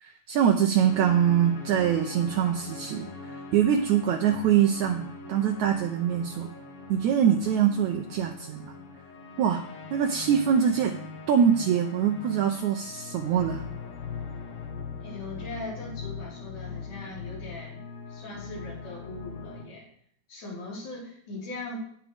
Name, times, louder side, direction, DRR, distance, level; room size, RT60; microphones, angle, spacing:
voice 1, 0.0-6.5 6.9-8.7 9.4-9.6 9.9-11.0 11.3-13.6, right 8 dB, 80° right, 3 dB, 1.7 m, -24 dB
sound 1, 0.8-19.6, left 4 dB, 90° left, 1.2 m, -41 dB
voice 2, 15.0-17.8 18.1-19.9 20.3-21.8, left 2 dB, 60° left, -7 dB, 5.9 m, -40 dB
18.0 x 6.1 x 3.5 m, 0.65 s
omnidirectional pair, 4.1 m